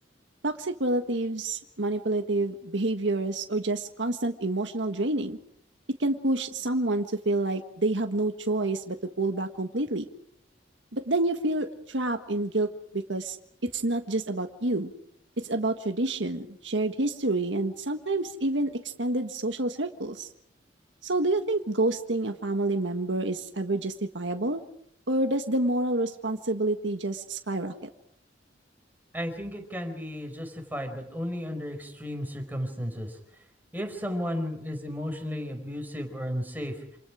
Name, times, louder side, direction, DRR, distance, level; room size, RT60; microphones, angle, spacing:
voice 1, 0.4-5.4 6.0-10.0 10.9-13.4 13.6-14.9 15.4-20.3 21.0-24.6 25.1-27.9, right 2 dB, 80° right, 5 dB, 1.6 m, -28 dB
voice 2, 29.1-33.1 33.7-36.7, equal, 10° right, 4 dB, 5.1 m, -34 dB
28.0 x 27.5 x 5.0 m, 0.71 s
head